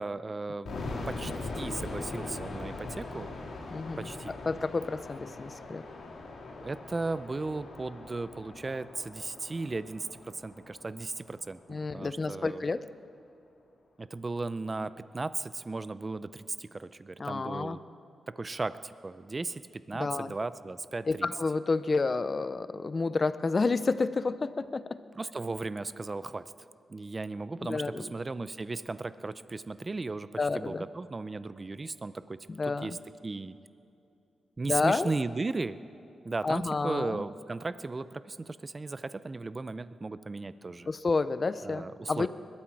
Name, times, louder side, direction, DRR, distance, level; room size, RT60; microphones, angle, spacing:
voice 1, 0.0-3.3 4.0-4.4 6.6-12.6 14.0-17.8 18.3-21.3 25.1-26.4 26.9-33.0 33.2-33.6 34.6-35.8 36.2-40.9 41.6-42.3, right 3 dB, 30° right, 14 dB, 0.5 m, -36 dB
sound 1, 0.6-11.5, left 2 dB, 75° left, 3.5 m, -41 dB
voice 2, 3.7-4.1 4.5-5.9 11.7-12.8 17.2-17.8 20.0-20.3 21.1-25.0 27.6-28.0 30.4-30.8 32.5-33.0 34.7-35.1 36.4-37.2 40.9-42.3, left 3 dB, 35° left, 14 dB, 0.6 m, -30 dB
21.0 x 13.0 x 4.7 m, 2.7 s
cardioid pair, 85°, 0 cm